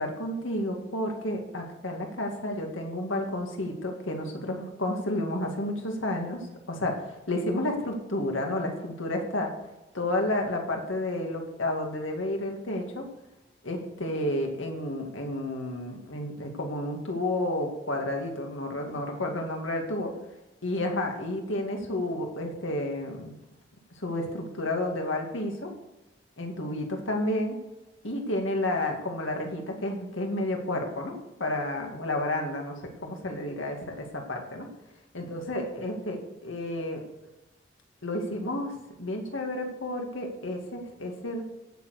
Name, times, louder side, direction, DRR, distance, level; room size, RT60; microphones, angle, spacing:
voice 1, 0.0-9.5 9.9-13.1 13.6-20.1 20.6-23.3 24.0-25.7 26.4-27.6 28.0-34.7 35.1-37.0 38.0-41.4, left 1 dB, 90° left, 2 dB, 2.3 m, -31 dB
16.0 x 6.8 x 6.6 m, 0.99 s
head